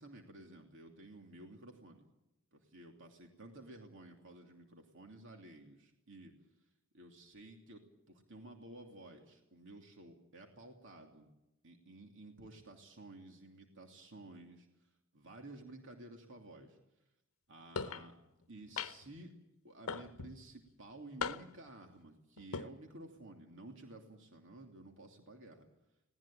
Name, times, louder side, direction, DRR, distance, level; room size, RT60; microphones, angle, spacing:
voice 1, 0.0-2.1 2.5-6.3 6.9-11.3 11.6-14.7 15.1-16.8 17.5-18.1 18.5-19.3 19.6-25.7, right 2 dB, 65° right, 3 dB, 2.9 m, -53 dB
sound 1, 17.8-18.1 18.8-19.2 19.9-20.4 21.2-21.7 22.4-22.7, left 5 dB, 75° left, 0.9 m, -39 dB
20.0 x 18.5 x 8.9 m, 0.89 s
head